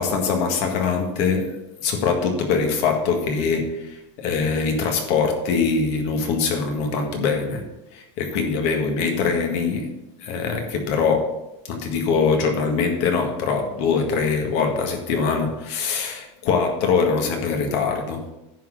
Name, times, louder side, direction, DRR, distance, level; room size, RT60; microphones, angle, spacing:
voice 1, 0.0-7.7 7.9-9.9 10.2-11.4 11.6-18.3, left 5 dB, 45° left, 1.8 m, -23 dB
10.5 x 4.2 x 7.5 m
supercardioid pair, 170°, 16 cm